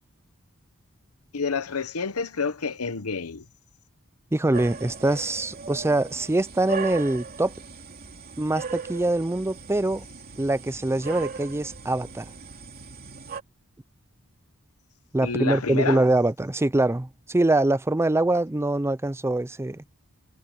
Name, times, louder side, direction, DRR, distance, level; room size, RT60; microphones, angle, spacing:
voice 1, 1.3-3.4 15.2-16.0, left 4 dB, 75° left, 1.1 m, -29 dB
voice 2, 4.3-7.5 8.4-10.0 10.4-12.3 15.1-19.8, right 2 dB, 10° right, 0.5 m, -24 dB
sound 1, 4.5-13.4, right 5 dB, 45° right, 2.8 m, -38 dB
head